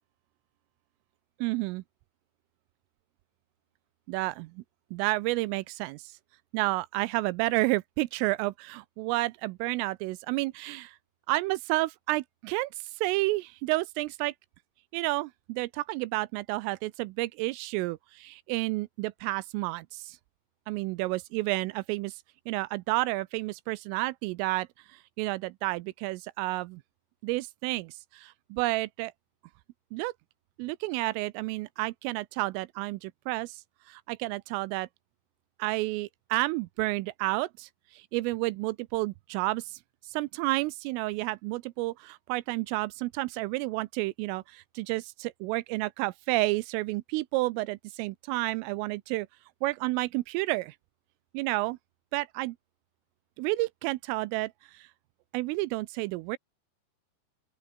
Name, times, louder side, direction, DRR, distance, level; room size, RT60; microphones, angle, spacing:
voice 1, 1.4-1.8 4.1-4.6 4.9-6.0 6.5-11.0 11.3-12.7 13.0-14.3 14.9-20.2 20.7-22.1 22.5-24.7 25.2-26.8 27.2-29.1 29.9-30.1 30.6-33.6 33.9-34.9 35.6-37.7 38.1-39.8 40.1-49.3 49.6-50.7 51.3-51.8 52.1-52.6 53.4-54.9 55.3-56.4, right 21 dB, 85° right, 3.2 m, -30 dB
open air
omnidirectional pair, 5.9 m